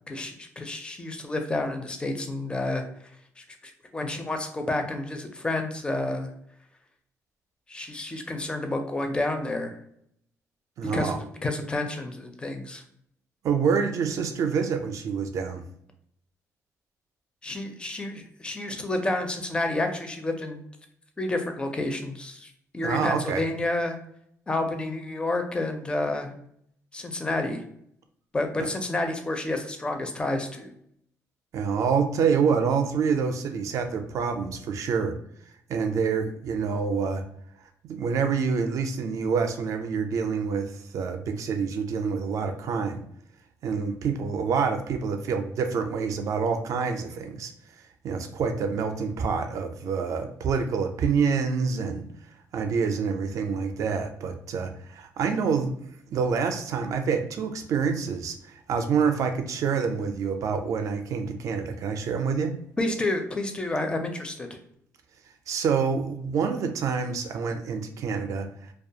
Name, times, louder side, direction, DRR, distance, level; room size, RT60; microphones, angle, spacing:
voice 1, 0.1-2.8 3.4-6.3 7.7-9.7 10.9-12.8 17.4-20.6 21.2-24.0 24.5-26.3 26.9-27.6 28.3-30.7 62.8-64.5, left 2 dB, 15° left, 5 dB, 0.4 m, -30 dB
voice 2, 10.8-11.2 13.4-15.6 22.8-23.4 31.5-35.1 35.7-37.2 37.8-43.0 43.6-47.5 48.0-52.0 52.5-55.7 56.1-62.6 65.5-68.5, right 6 dB, 60° right, 6 dB, 0.4 m, -27 dB
2.4 x 2.2 x 2.7 m, 0.70 s
cardioid pair, 115°, 6 cm